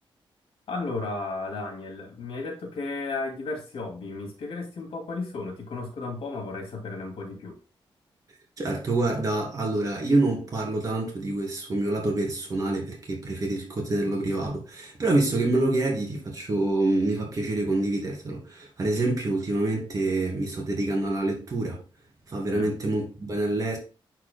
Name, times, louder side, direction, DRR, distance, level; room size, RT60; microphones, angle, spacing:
voice 1, 0.7-7.6 22.5-22.7, left 3 dB, 85° left, 2.2 m, -34 dB
voice 2, 8.6-21.8 22.3-23.8, right 2 dB, 40° right, 2.6 m, -26 dB
11.0 x 4.7 x 2.2 m
wide cardioid pair, 165°, 9 cm